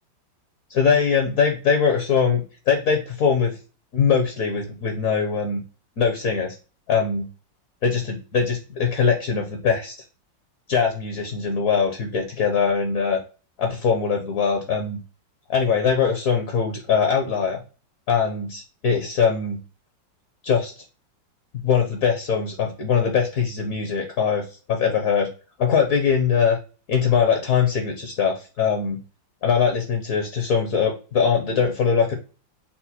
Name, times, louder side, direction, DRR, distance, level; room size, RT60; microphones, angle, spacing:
voice 1, 0.7-3.6 3.9-5.6 6.0-6.6 6.9-7.3 7.8-9.9 10.7-13.2 13.6-15.0 15.5-17.6 18.1-19.6 20.4-20.7 21.6-25.3 25.6-26.6 26.9-29.0 29.4-32.1, left 6 dB, 60° left, 4 dB, 0.9 m, -22 dB
4.2 x 2.1 x 4.1 m, 0.35 s
omnidirectional pair, 2.0 m